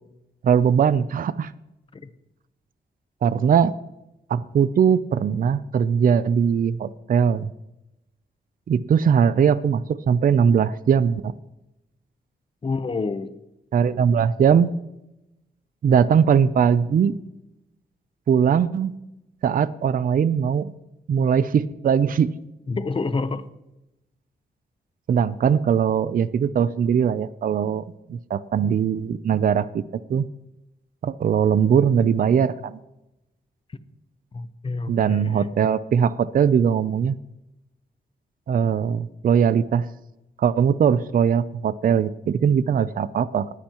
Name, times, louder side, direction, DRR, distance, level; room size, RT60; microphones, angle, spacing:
voice 1, 0.4-1.5 3.2-3.7 4.3-7.5 8.7-11.3 13.7-14.7 15.8-17.1 18.3-18.9 19.4-20.7 21.1-22.3 25.1-27.8 28.1-29.8 30.1-30.2 31.0-32.8 34.9-37.2 38.5-39.9 40.4-43.5, right 7 dB, 55° right, 16 dB, 0.5 m, -20 dB
voice 2, 12.6-13.3 22.7-23.4 34.3-35.5, left 3 dB, 30° left, 13 dB, 0.8 m, -28 dB
19.0 x 10.0 x 3.0 m, 0.90 s
wide cardioid pair, 135°, 18 cm